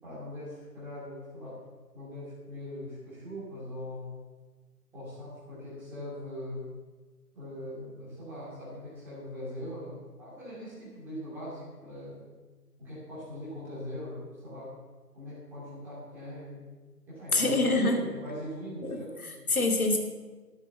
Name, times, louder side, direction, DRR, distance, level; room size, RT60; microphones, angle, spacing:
voice 1, 0.0-1.6 1.9-4.2 4.9-6.7 7.3-12.2 12.8-14.7 15.1-16.7 17.1-19.5, left 1 dB, 5° right, -10 dB, 2.8 m, -41 dB
voice 2, 17.3-18.0 18.8-19.0 19.5-20.0, left 2 dB, 60° left, 3 dB, 2.7 m, -25 dB
14.0 x 7.9 x 7.2 m, 1.3 s
figure-of-eight pair, 160°, 49 cm